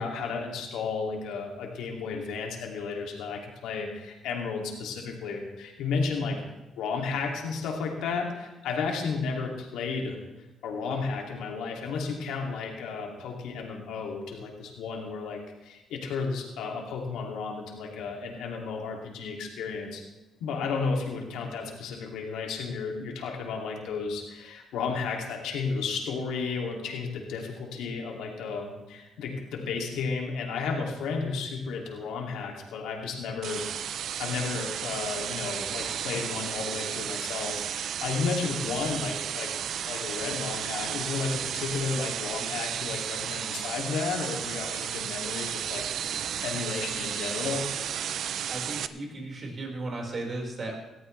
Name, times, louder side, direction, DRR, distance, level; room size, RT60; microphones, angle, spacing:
voice 1, 0.0-6.4 6.8-10.2 10.6-20.0 20.4-33.9 34.2-39.5 39.8-47.7, left 5 dB, 90° left, 1 dB, 2.7 m, -33 dB
sound 1, 33.4-48.9, right 9 dB, 70° right, 0.6 m, -33 dB
voice 2, 48.5-50.8, right 2 dB, 45° right, 0 dB, 5.0 m, -35 dB
18.5 x 14.5 x 3.4 m, 1.1 s
cardioid pair, 90°, 0 cm